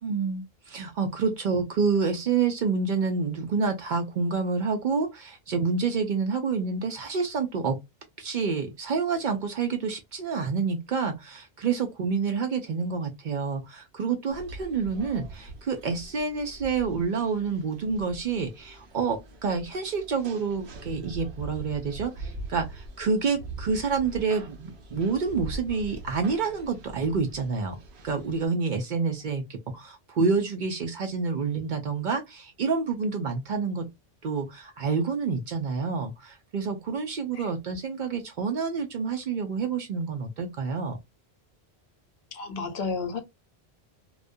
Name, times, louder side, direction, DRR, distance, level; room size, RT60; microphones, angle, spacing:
voice 1, 0.0-7.8 8.2-27.8 28.0-33.9 34.2-41.0, right 5 dB, 60° right, 0.6 m, -28 dB
sound 1, 14.3-28.5, right 2 dB, 80° right, 0.9 m, -43 dB
voice 2, 42.3-43.2, left 4 dB, 75° left, 0.9 m, -32 dB
2.3 x 2.1 x 2.5 m
omnidirectional pair, 1.1 m